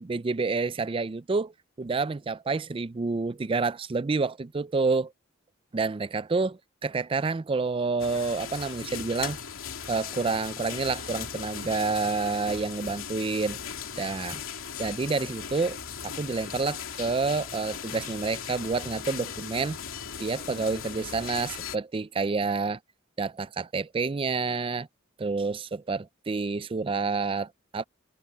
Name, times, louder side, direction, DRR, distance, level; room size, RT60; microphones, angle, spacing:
voice 1, 0.0-5.1 5.7-9.4 9.9-13.6 14.0-14.4 14.8-15.8 16.0-19.8 20.2-22.8 23.2-24.9 25.2-27.8, right 4 dB, 25° right, 0.4 m, -29 dB
sound 1, 8.0-21.8, left 7 dB, 85° left, 2.6 m, -38 dB
head